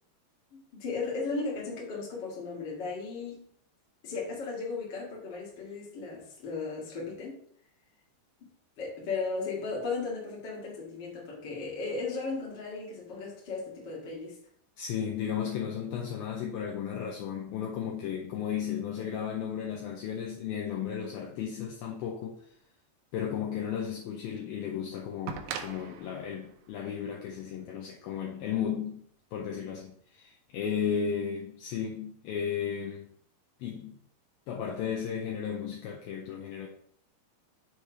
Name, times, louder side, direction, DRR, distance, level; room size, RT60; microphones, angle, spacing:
voice 1, 0.5-3.5 4.0-7.4 8.8-14.4, left 4 dB, 45° left, -3 dB, 1.5 m, -36 dB
voice 2, 14.8-22.4 23.1-29.0 29.3-33.1 33.6-34.0 34.5-36.7, left 8 dB, 80° left, -1 dB, 2.2 m, -34 dB
sound 1, 25.3-28.1 29.3-29.4, right 7 dB, 80° right, 2.1 m, -42 dB
7.0 x 3.2 x 5.7 m, 0.64 s
omnidirectional pair, 5.0 m